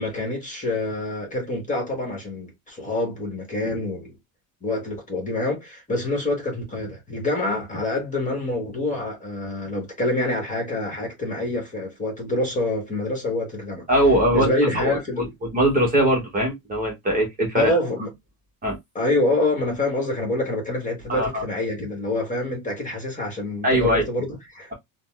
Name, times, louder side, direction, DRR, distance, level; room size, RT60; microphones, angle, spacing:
voice 1, 0.0-4.1 4.6-13.8 14.3-15.3 17.5-18.1 18.9-24.7, left 2 dB, 20° left, 1.3 m, -26 dB
voice 2, 13.9-14.5 14.7-15.0 15.4-17.7 18.6-18.8 21.1-21.4 23.6-24.1, right 1 dB, 20° right, 1.1 m, -21 dB
3.8 x 2.2 x 2.3 m
cardioid pair, 140°, 42 cm